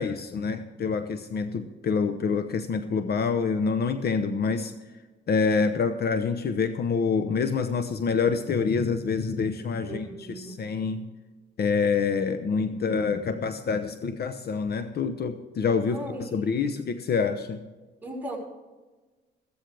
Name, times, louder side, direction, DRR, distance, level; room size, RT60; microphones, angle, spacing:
voice 1, 0.0-4.7 5.3-11.1 11.6-17.6, left 5 dB, 55° left, 9 dB, 0.9 m, -27 dB
voice 2, 9.8-10.6 15.8-16.5 18.0-18.4, right 1 dB, 10° right, -3 dB, 5.3 m, -38 dB
14.5 x 14.0 x 3.4 m, 1.2 s
cardioid pair, 90°, 20 cm